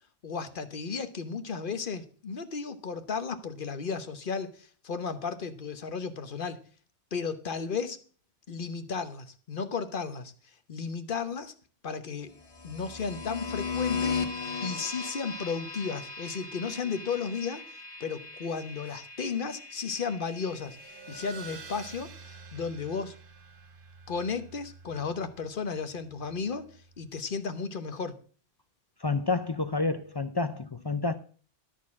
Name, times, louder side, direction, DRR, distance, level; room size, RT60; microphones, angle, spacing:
voice 1, 0.2-6.6 7.1-8.0 8.5-10.3 10.7-11.5 11.8-12.4 12.6-14.2 14.6-20.8 21.1-23.1 24.1-26.7 27.0-28.1, left 5 dB, 50° left, 1.1 m, -34 dB
sound 1, 12.4-21.2, left 5 dB, 70° left, 1.6 m, -37 dB
sound 2, 20.4-27.4, right 4 dB, 50° right, 1.3 m, -49 dB
voice 2, 29.0-31.2, left 3 dB, 30° left, 0.4 m, -29 dB
13.0 x 4.5 x 8.4 m
omnidirectional pair, 1.2 m